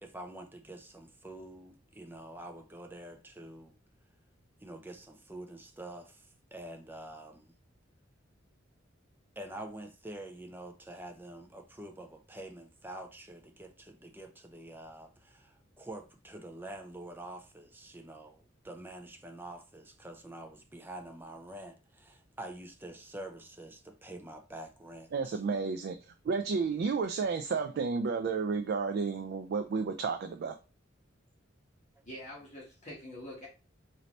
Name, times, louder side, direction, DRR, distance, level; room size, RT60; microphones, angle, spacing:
voice 1, 0.0-3.7 4.6-7.5 9.4-25.4 32.0-32.1, right 1 dB, 10° right, 0.6 m, -46 dB
voice 2, 25.1-26.0 26.2-30.6, right 5 dB, 55° right, 0.3 m, -31 dB
voice 3, 32.1-33.5, left 1 dB, 40° left, 1.8 m, -45 dB
4.0 x 2.7 x 3.2 m
head